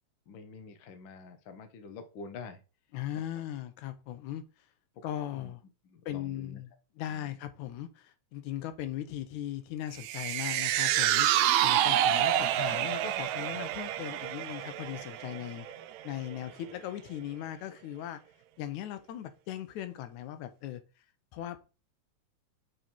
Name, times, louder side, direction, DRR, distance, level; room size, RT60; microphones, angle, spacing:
voice 1, 0.3-2.6 5.3-5.5 5.8-6.6, left 4 dB, 65° left, 1.2 m, -47 dB
voice 2, 2.9-4.4 5.0-5.6 6.1-6.7 7.0-15.7 16.0-18.2 18.6-20.8 21.3-21.6, left 12 dB, 85° left, 2.2 m, -38 dB
sound 1, 10.0-16.4 16.8-16.9, right 12 dB, 80° right, 1.9 m, -28 dB
6.5 x 4.8 x 4.4 m
omnidirectional pair, 3.4 m